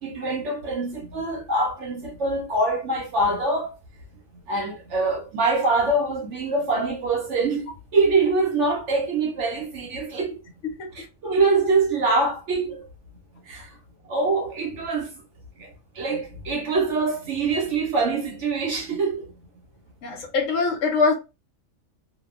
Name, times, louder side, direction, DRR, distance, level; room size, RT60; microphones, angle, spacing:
voice 1, 0.0-3.7 4.5-10.3 10.9-12.8 13.5-13.7 14.1-15.1 15.6-15.7 16.0-19.3, right 3 dB, 65° right, 0.8 m, -24 dB
voice 2, 20.0-21.1, left 4 dB, 65° left, 1.0 m, -22 dB
2.8 x 2.1 x 2.3 m
omnidirectional pair, 1.6 m